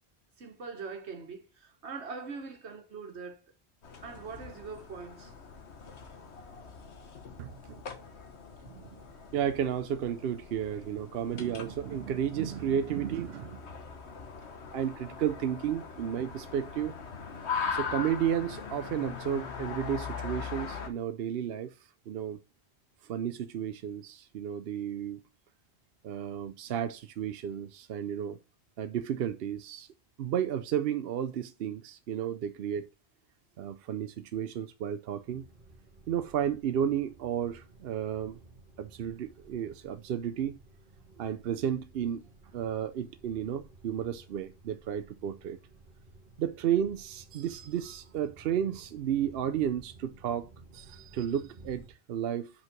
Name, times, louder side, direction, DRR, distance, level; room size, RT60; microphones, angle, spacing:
voice 1, 0.4-3.4 4.0-5.3, right 5 dB, 85° right, 1.5 m, -42 dB
sound 1, 3.8-20.9, left 5 dB, 80° left, 1.4 m, -41 dB
voice 2, 7.4-7.8 8.7-9.0 9.3-13.6 14.7-16.9 17.7-21.7 22.1-22.4 23.1-25.2 26.0-28.4 28.8-29.9 30.2-32.9 33.6-35.5 36.1-38.4 38.8-40.6 41.2-42.2 42.5-45.6 46.4-52.5, right 9 dB, 65° right, 0.8 m, -32 dB
sound 2, 35.2-51.9, right 3 dB, 50° right, 1.5 m, -55 dB
5.7 x 5.4 x 5.9 m
omnidirectional pair, 1.1 m